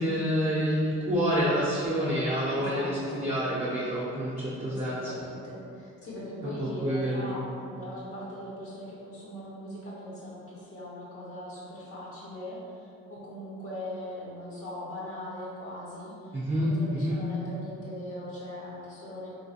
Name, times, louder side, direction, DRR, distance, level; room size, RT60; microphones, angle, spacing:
voice 1, 0.0-5.1 6.4-7.3 16.3-17.2, equal, 20° right, -8 dB, 0.6 m, -28 dB
voice 2, 2.5-3.3 4.6-19.3, left 1 dB, 50° left, -6 dB, 0.8 m, -40 dB
3.1 x 3.0 x 2.8 m, 2.6 s
cardioid pair, 90°, 30 cm